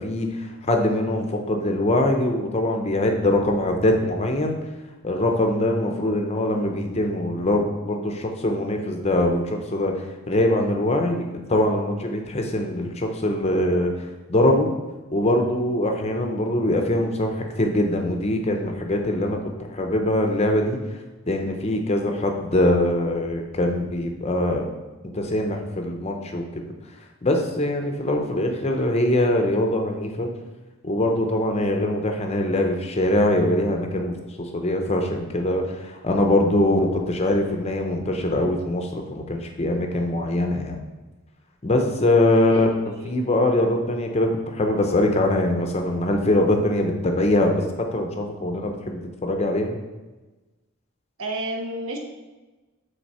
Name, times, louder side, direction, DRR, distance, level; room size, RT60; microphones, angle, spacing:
voice 1, 0.0-4.6 5.0-13.9 14.3-14.7 15.1-20.8 21.3-24.7 25.1-26.6 27.2-30.3 30.8-34.1 34.4-40.8 41.6-49.8, left 1 dB, 30° left, 3 dB, 0.6 m, -23 dB
voice 2, 42.3-43.1 51.2-52.0, right 1 dB, 75° right, 1 dB, 1.0 m, -32 dB
6.1 x 4.0 x 4.2 m, 1.2 s
head